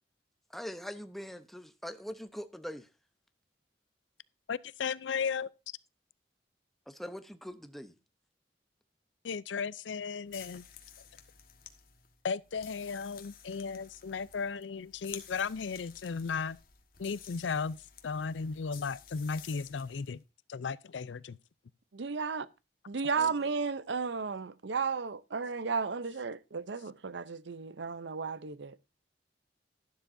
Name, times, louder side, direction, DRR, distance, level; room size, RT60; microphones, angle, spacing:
voice 1, 0.5-2.9 6.9-7.9 23.2-23.5, equal, ahead, 0.8 m, -43 dB
voice 2, 4.5-5.5 9.2-10.6 12.2-16.6 17.0-20.2 20.5-21.4, left 5 dB, 90° left, 0.5 m, -35 dB
sound 1, 10.2-20.1, left 9 dB, 55° left, 1.4 m, -52 dB
voice 3, 21.9-22.5 22.9-28.8, right 5 dB, 75° right, 0.6 m, -34 dB
12.5 x 11.5 x 2.6 m
head